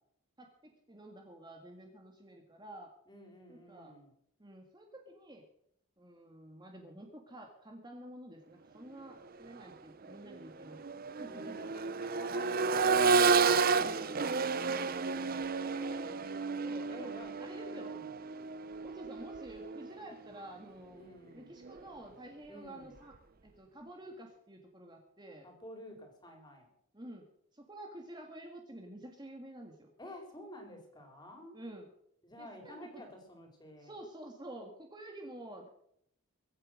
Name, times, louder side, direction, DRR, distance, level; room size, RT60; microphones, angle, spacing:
voice 1, 0.4-2.9 3.5-3.9 4.4-5.4 6.0-10.8 11.2-11.6 13.8-14.4 14.6-15.5 16.6-17.1 17.4-17.9 18.8-21.0 21.3-23.1 23.4-25.5 26.9-27.3 27.5-29.9 31.5-31.9 32.4-33.0 33.8-35.7, right 1 dB, 20° right, 2 dB, 1.7 m, -50 dB
voice 2, 3.1-4.1 11.3-14.1 14.9-17.4 17.7-18.2 20.9-21.5 22.5-22.9 25.4-26.7 30.0-31.6 32.2-33.9, equal, 20° left, 3 dB, 4.0 m, -51 dB
Accelerating revving vroom, 9.4-9.6 10.0-19.9 21.6-21.7, right 4 dB, 40° right, 0.6 m, -31 dB
23.0 x 8.9 x 6.4 m, 0.72 s
head